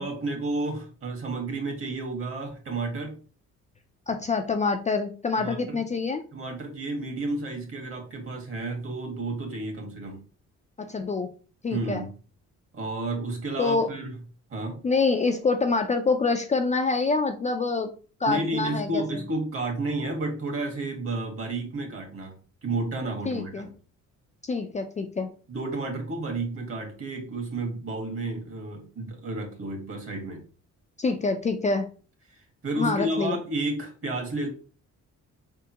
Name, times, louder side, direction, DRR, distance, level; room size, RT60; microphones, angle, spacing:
voice 1, 0.0-3.2 5.4-5.8 6.3-10.2 11.7-12.1 12.7-14.1 14.5-14.8 18.3-23.7 25.5-30.4 32.3-34.5, right 2 dB, 45° right, 3 dB, 1.7 m, -31 dB
voice 2, 4.1-6.2 10.8-11.3 11.6-12.0 13.6-13.9 14.8-17.9 18.2-19.0 23.3-23.7 24.4-25.3 31.0-31.9 32.8-33.4, left 4 dB, 25° left, 5 dB, 0.4 m, -26 dB
5.0 x 3.5 x 2.8 m, 0.38 s
cardioid pair, 135°, 30 cm